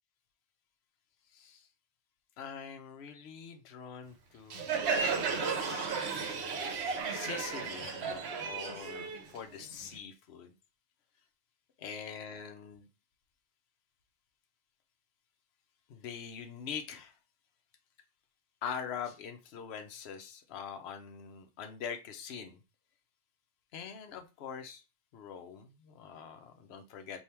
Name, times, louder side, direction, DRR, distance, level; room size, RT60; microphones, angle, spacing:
voice 1, 1.3-1.7 2.4-6.3 7.1-10.5 11.8-12.9 15.9-17.2 18.6-22.6 23.7-24.8 25.1-27.2, left 7 dB, 65° left, 0.9 m, -44 dB
Crowd, 4.5-9.9, right 5 dB, 65° right, 1.0 m, -34 dB
3.5 x 2.7 x 4.3 m
omnidirectional pair, 1.2 m